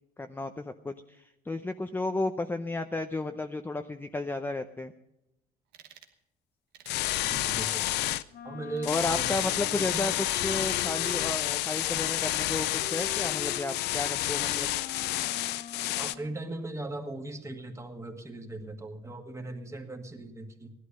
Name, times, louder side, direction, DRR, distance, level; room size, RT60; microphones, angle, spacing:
voice 1, 0.2-4.9 8.9-14.7, left 2 dB, 10° left, 7 dB, 0.6 m, -33 dB
sound 1, 5.7-6.1 6.7-7.1 7.6-8.1 8.8-9.3 9.9-10.5, right 9 dB, 90° right, 1.4 m, -53 dB
sound 2, 6.9-8.2 8.8-16.1, left 15 dB, 85° left, 0.6 m, -30 dB
voice 2, 7.2-7.9 8.4-9.3 9.7-10.1 15.9-20.7, right 2 dB, 15° right, 4 dB, 1.9 m, -39 dB
Wind instrument woodwind instrument, 8.3-16.4, left 7 dB, 60° left, 1.0 m, -44 dB
16.5 x 11.5 x 5.4 m, 0.85 s
cardioid pair, 110°, 17 cm